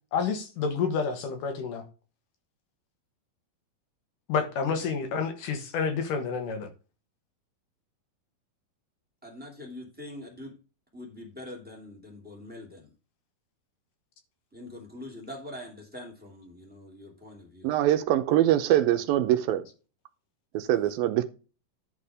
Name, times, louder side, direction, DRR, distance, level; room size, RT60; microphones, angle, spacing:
voice 1, 0.1-1.8 4.3-6.7, left 5 dB, 65° left, 2.7 m, -29 dB
voice 2, 9.2-10.6 10.9-12.9 14.5-17.7, left 1 dB, 5° right, 1.9 m, -43 dB
voice 3, 17.6-19.6 20.5-21.2, right 13 dB, 80° right, 2.6 m, -23 dB
11.0 x 4.4 x 4.9 m
omnidirectional pair, 4.2 m